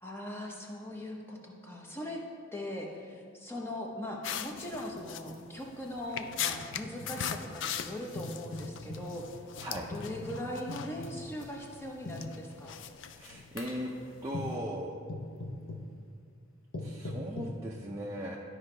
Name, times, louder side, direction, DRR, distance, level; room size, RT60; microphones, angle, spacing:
voice 1, 0.0-2.2 2.5-9.2 9.9-12.8, left 1 dB, 10° left, -1 dB, 0.8 m, -40 dB
sound 1, 4.2-14.5, left 8 dB, 65° left, 0.3 m, -41 dB
sound 2, 5.0-5.1 5.3-5.4 6.3-7.4 8.1-9.1 9.9-11.3 12.0-12.3 13.0-13.3 13.6-13.9 14.3-14.6 15.1-15.9 16.7-17.6, left 2 dB, 85° left, 0.8 m, -41 dB
voice 2, 13.1-13.9 14.2-14.9 16.8-18.4, equal, 15° right, -4 dB, 0.5 m, -38 dB
12.5 x 5.0 x 3.3 m, 2.3 s
head